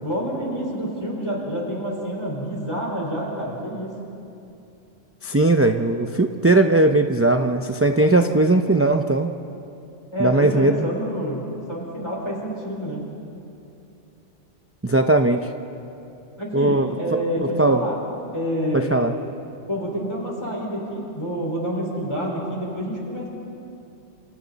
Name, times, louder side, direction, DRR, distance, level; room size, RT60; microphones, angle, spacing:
voice 1, 0.0-3.9 10.1-13.0 16.4-18.0 18.3-19.1 19.7-23.3, equal, 25° left, -3 dB, 4.9 m, -28 dB
voice 2, 5.2-9.3 10.2-10.9 14.8-15.5 16.5-16.9 17.4-17.8 18.7-19.1, right 2 dB, 15° right, 5 dB, 0.5 m, -19 dB
28.5 x 28.0 x 4.2 m, 2.7 s
omnidirectional pair, 1.2 m